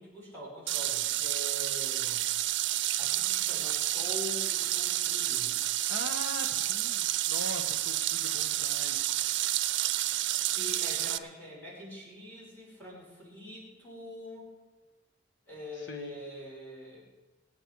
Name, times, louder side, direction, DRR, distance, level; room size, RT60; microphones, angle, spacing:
voice 1, 0.0-2.2 3.0-5.5 10.5-14.5 15.5-17.0, left 1 dB, 10° left, -5 dB, 5.6 m, -44 dB
sound 1, 0.7-11.2, right 14 dB, 75° right, 0.6 m, -30 dB
voice 2, 5.6-9.2 15.7-16.2, left 2 dB, 80° left, 5 dB, 1.3 m, -42 dB
25.5 x 8.9 x 4.7 m, 1.2 s
head